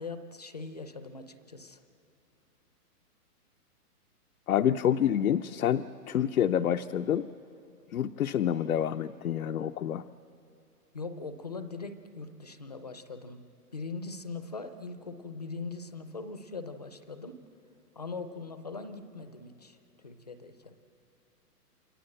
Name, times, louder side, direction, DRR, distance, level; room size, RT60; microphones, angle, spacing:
voice 1, 0.0-1.8 10.9-13.4 13.7-17.4 18.0-19.8 20.0-20.7, left 4 dB, 25° left, 10 dB, 0.6 m, -41 dB
voice 2, 4.5-7.3 7.9-10.0, left 10 dB, 65° left, 8 dB, 0.7 m, -27 dB
28.5 x 23.0 x 7.7 m, 2.7 s
hypercardioid pair, 175°, 47 cm